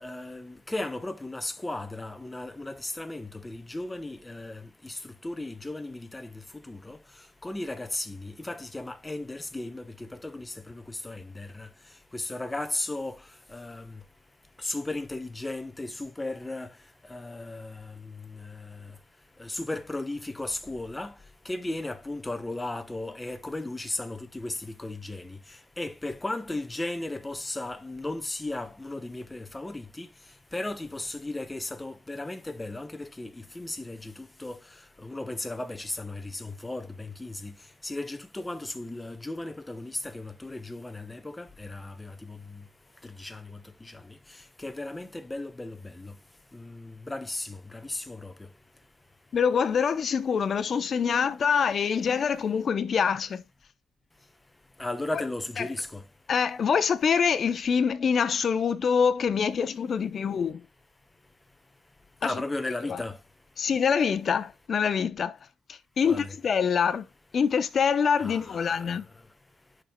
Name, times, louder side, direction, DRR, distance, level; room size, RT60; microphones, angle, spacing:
voice 1, 0.0-4.9 5.2-6.3 6.7-7.0 7.4-11.7 12.1-13.2 13.5-13.9 14.6-16.7 17.1-17.9 18.4-18.6 19.4-21.1 21.5-25.4 25.8-30.1 30.5-34.1 34.4-34.6 35.0-37.5 37.8-42.4 43.2-43.5 44.6-46.1 46.5-48.3 54.8-56.0 62.2-63.2 66.0-66.3 68.2-68.8, left 2 dB, 15° left, 1.0 m, -35 dB
voice 2, 49.3-53.4 55.6-55.7 56.3-60.6 62.2-62.3 62.9-63.0 63.6-65.4 65.7-67.1 67.3-69.1, left 6 dB, 50° left, 0.8 m, -25 dB
11.0 x 4.5 x 2.3 m
cardioid pair, 95°, 0 cm